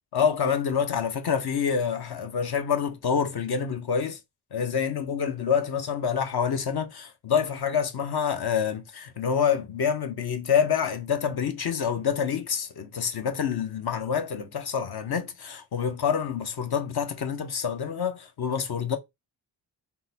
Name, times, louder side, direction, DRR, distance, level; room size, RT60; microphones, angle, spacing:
voice 1, 0.1-4.2 4.5-19.0, left 7 dB, 55° left, 0.7 m, -27 dB
3.7 x 2.2 x 2.7 m
supercardioid pair, 50°, 44 cm